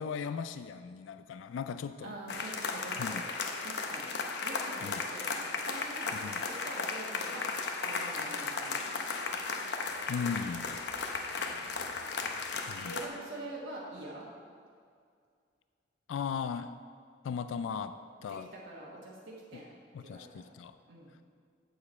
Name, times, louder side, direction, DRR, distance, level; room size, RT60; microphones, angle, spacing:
voice 1, 0.0-2.2 3.0-3.2 4.8-5.0 6.1-6.4 10.1-10.8 12.7-13.0 16.1-16.8 17.2-18.5 19.5-19.6 19.9-20.8, left 6 dB, 85° left, 11 dB, 0.3 m, -37 dB
voice 2, 2.0-3.3 3.6-4.1 4.4-7.5 7.8-9.1 11.4-12.0 12.8-14.2 18.3-20.4 20.9-21.1, right 1 dB, 70° right, -6 dB, 1.3 m, -45 dB
sound 1, 2.3-13.1, left 4 dB, 60° left, 0.7 m, -35 dB
8.4 x 7.0 x 4.3 m, 2.1 s
head